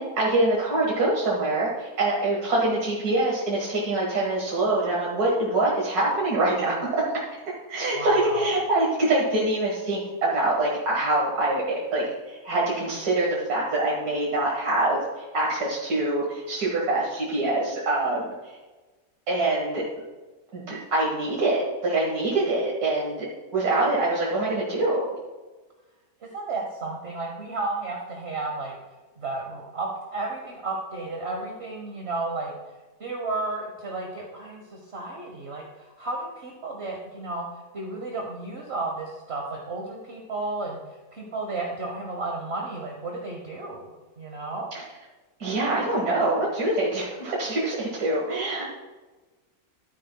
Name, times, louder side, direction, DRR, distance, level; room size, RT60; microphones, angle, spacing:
voice 1, 0.0-7.0 7.7-18.6 19.3-19.8 20.5-23.3 23.5-25.1 45.4-48.7, right 2 dB, 85° right, -5 dB, 2.1 m, -25 dB
voice 2, 7.9-8.5 26.3-28.7 29.2-32.5 33.0-37.5 37.7-43.9 44.2-44.7, right 3 dB, 45° right, 0 dB, 1.3 m, -33 dB
12.0 x 9.7 x 2.3 m, 1.2 s
omnidirectional pair, 1.6 m